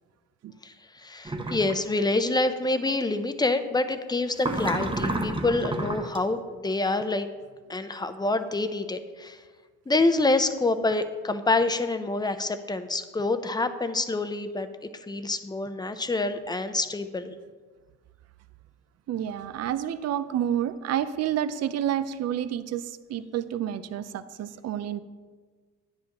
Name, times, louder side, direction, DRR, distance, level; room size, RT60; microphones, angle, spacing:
voice 1, 0.6-7.3 7.7-9.4 9.9-14.7 15.1-17.3, left 2 dB, 15° left, 10 dB, 0.6 m, -27 dB
sound 1, 1.3-1.8 4.4-6.2, right 2 dB, 15° right, 0.7 m, -30 dB
voice 2, 19.1-25.0, right 10 dB, 55° right, 12 dB, 0.5 m, -29 dB
10.0 x 9.7 x 3.0 m, 1.5 s
cardioid pair, 90°, 30 cm